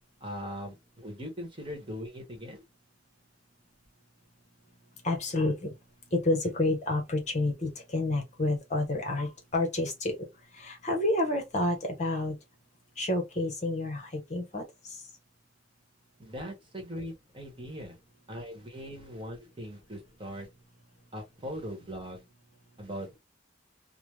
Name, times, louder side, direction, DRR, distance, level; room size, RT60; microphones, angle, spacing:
voice 1, 0.2-2.6 16.2-18.0 18.3-20.5 21.1-22.2 22.8-23.2, equal, 25° right, 1.1 m, -40 dB
voice 2, 5.0-5.7 6.1-10.2 10.5-12.3 13.0-15.0, left 2 dB, 40° left, 0.9 m, -29 dB
3.3 x 2.1 x 3.1 m
head